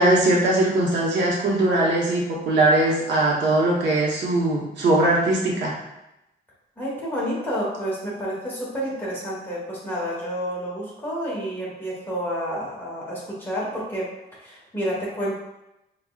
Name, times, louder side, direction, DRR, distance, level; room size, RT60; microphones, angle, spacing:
voice 1, 0.0-5.7, right 2 dB, 80° right, -3 dB, 0.9 m, -20 dB
voice 2, 6.8-14.1 14.4-15.4, equal, 10° left, -6 dB, 1.1 m, -29 dB
5.0 x 2.2 x 2.3 m, 0.89 s
wide cardioid pair, 160°, 18 cm